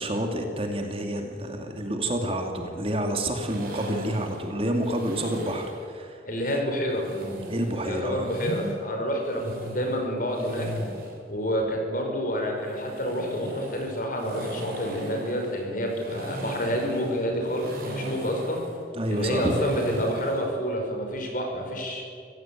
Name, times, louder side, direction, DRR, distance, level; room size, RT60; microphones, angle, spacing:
voice 1, 0.0-6.2 7.5-8.4 18.9-19.6, right 1 dB, 30° right, 4 dB, 2.5 m, -29 dB
sound 1, 3.4-5.8 6.9-8.7 9.2-11.2 12.6-20.5, equal, 50° right, 5.9 m, -38 dB
voice 2, 6.2-7.1 7.8-10.7 11.3-18.6 19.1-22.0, equal, 45° left, 2 dB, 5.5 m, -28 dB
26.5 x 16.5 x 9.1 m, 2.4 s
head